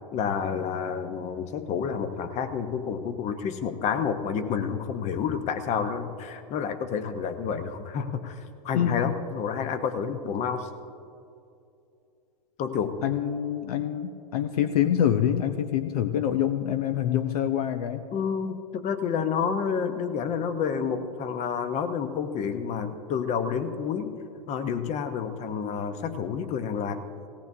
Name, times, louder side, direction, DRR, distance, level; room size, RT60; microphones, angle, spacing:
voice 1, 0.1-10.7 12.6-13.0 18.1-24.2 24.5-27.0, left 6 dB, 35° left, 9 dB, 1.0 m, -29 dB
voice 2, 8.7-9.1 13.0-18.1, left 10 dB, 65° left, 9 dB, 0.7 m, -26 dB
18.0 x 17.5 x 2.8 m, 2.6 s
hypercardioid pair, 110°, 21 cm